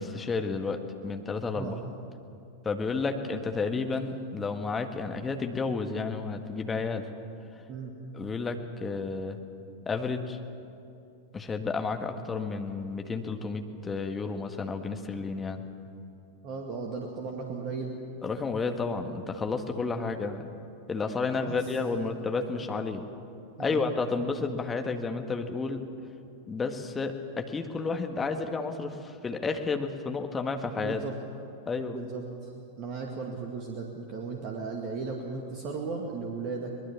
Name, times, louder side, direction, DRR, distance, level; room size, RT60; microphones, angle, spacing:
voice 1, 0.0-1.7 2.6-7.0 8.1-9.4 9.8-10.4 11.3-15.6 18.2-20.5 20.9-23.0 23.6-25.8 26.5-31.0 31.7-32.0, left 4 dB, 15° left, 5 dB, 1.7 m, -31 dB
voice 2, 1.6-1.9 7.7-7.9 16.4-18.0 21.4-21.6 23.6-23.8 30.7-31.1 31.9-32.5 32.8-36.7, right 4 dB, 40° right, 1 dB, 2.2 m, -36 dB
23.5 x 20.5 x 7.2 m, 2.7 s
figure-of-eight pair, 90°, 0 cm